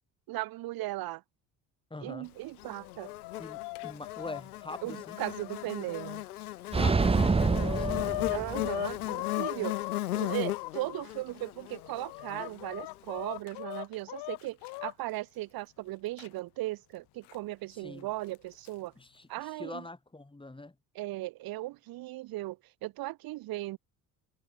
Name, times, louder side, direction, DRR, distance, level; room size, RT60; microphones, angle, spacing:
voice 1, 0.3-1.2 2.0-3.1 4.8-6.2 8.3-9.8 10.1-18.9 19.3-19.8 20.9-22.6 22.8-23.8, right 18 dB, 55° right, 1.2 m, -37 dB
voice 2, 1.9-2.3 3.4-5.2 6.8-8.0 17.7-18.1 19.0-20.7, left 2 dB, 10° left, 4.0 m, -44 dB
Buzz, 2.6-13.0, left 15 dB, 80° left, 1.2 m, -38 dB
Chicken rooster, 2.6-6.1 6.6-6.7 7.0-11.0 11.7-14.9 16.2-16.3 17.3-17.4 18.3-18.7, left 23 dB, 65° left, 3.3 m, -38 dB
sound 1, 6.7-8.9, right 4 dB, 15° right, 0.8 m, -27 dB
figure-of-eight pair, 55°, 44 cm